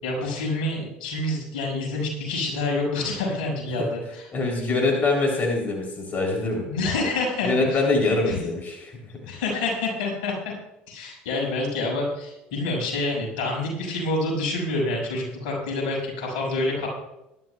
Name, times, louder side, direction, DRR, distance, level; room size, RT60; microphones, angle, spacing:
voice 1, 0.0-4.3 6.7-8.4 9.3-10.5 10.9-16.9, left 2 dB, 70° left, -1 dB, 5.7 m, -27 dB
voice 2, 4.3-6.6 7.4-8.9, left 3 dB, 35° left, 0 dB, 3.3 m, -24 dB
21.5 x 12.0 x 2.3 m, 0.90 s
hypercardioid pair, 70°, 5 cm